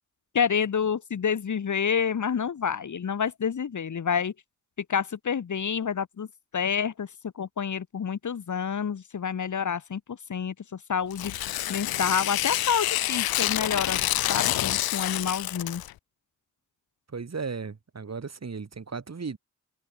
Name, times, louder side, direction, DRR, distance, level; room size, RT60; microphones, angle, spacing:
voice 1, 0.3-4.3 4.9-6.3 6.5-7.1 7.4-10.5 10.9-14.0 14.3-15.8, left 7 dB, 55° left, 2.0 m, -28 dB
Tearing, 11.1-15.9, left 14 dB, 85° left, 1.0 m, -28 dB
voice 2, 17.1-19.4, right 5 dB, 45° right, 5.5 m, -35 dB
supercardioid pair, 45°, 35 cm